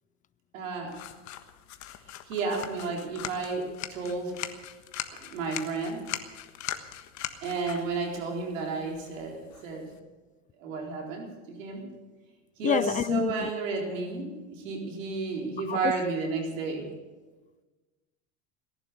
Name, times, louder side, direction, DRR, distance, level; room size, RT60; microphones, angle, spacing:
voice 1, 0.5-1.0 2.3-4.4 5.1-6.1 7.4-10.0 10.6-11.9 12.6-16.9, right 4 dB, 75° right, 1 dB, 4.1 m, -32 dB
sound 1, 0.9-10.0, left 12 dB, 45° left, 1.4 m, -41 dB
voice 2, 12.6-13.5 15.7-15.9, left 9 dB, 20° left, 19 dB, 0.4 m, -27 dB
18.0 x 11.5 x 6.8 m, 1.3 s
hypercardioid pair, 95°, 38 cm